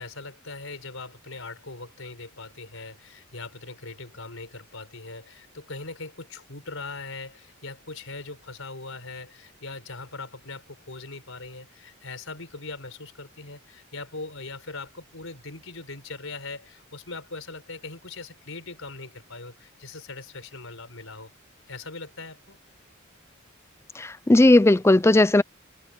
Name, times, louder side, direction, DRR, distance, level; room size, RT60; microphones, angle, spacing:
voice 1, 0.0-21.3 21.7-22.6, left 3 dB, 70° left, 5.1 m, -40 dB
voice 2, 24.0-25.4, left 2 dB, 10° left, 0.4 m, -17 dB
open air
head